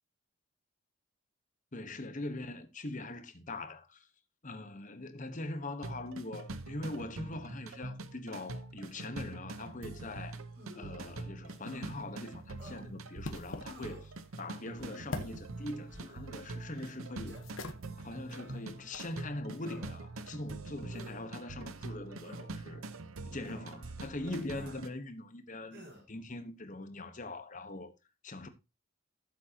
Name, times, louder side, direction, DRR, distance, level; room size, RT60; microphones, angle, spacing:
voice 1, 1.7-4.1 4.4-10.4 10.7-17.4 18.0-22.8 23.2-27.9 28.2-28.5, left 2 dB, 35° left, 1.2 m, -42 dB
sound 1, 5.8-24.9, right 2 dB, 80° right, 0.9 m, -44 dB
sound 2, 10.5-11.0 11.6-11.9 12.6-12.8 13.6-14.1 14.8-15.1 15.9-16.3 17.3-17.4 18.3-18.7 19.6-20.1 20.9-21.3 22.2-22.5 23.4-23.7 24.5-24.8 25.7-26.1, left 1 dB, 55° right, 5.9 m, -51 dB
sound 3, 11.5-19.2, left 2 dB, 75° left, 1.2 m, -48 dB
14.0 x 7.5 x 2.8 m
head